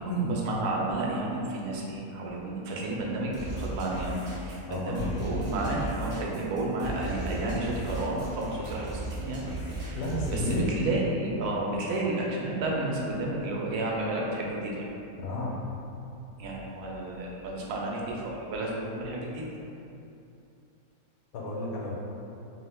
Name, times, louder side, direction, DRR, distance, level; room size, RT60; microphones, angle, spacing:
voice 1, 0.0-9.5 9.8-14.9 16.4-19.4, right 2 dB, 85° right, -3 dB, 1.1 m, -31 dB
sound 1, 3.3-10.7, right 2 dB, 40° right, 0.4 m, -36 dB
voice 2, 4.7-5.1 9.9-10.7 15.2-15.6 21.3-21.9, left 1 dB, 70° left, -4 dB, 1.0 m, -31 dB
2.8 x 2.2 x 3.3 m, 2.7 s
omnidirectional pair, 1.6 m